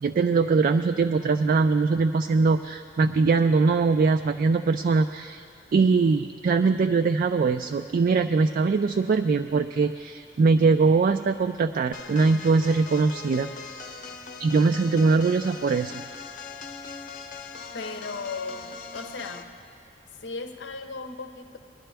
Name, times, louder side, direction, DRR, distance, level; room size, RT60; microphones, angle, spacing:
voice 1, 0.0-5.4 5.7-14.0 14.4-15.9, right 4 dB, 50° right, 8 dB, 0.3 m, -22 dB
sound 1, 11.9-19.5, left 5 dB, 45° left, 0.8 m, -41 dB
voice 2, 17.7-19.6 20.2-21.6, left 4 dB, 90° left, 6 dB, 0.8 m, -36 dB
20.5 x 11.0 x 3.4 m, 2.3 s
head